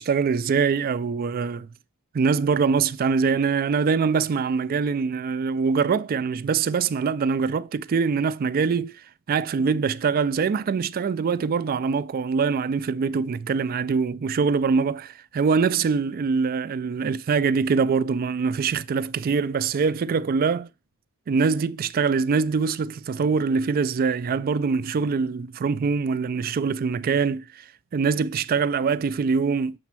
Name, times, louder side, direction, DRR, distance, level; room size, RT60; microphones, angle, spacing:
voice 1, 0.0-1.7 2.1-8.9 9.3-20.7 21.3-27.7 27.9-29.8, right 5 dB, 40° right, 0.3 m, -23 dB
6.9 x 4.2 x 6.0 m
head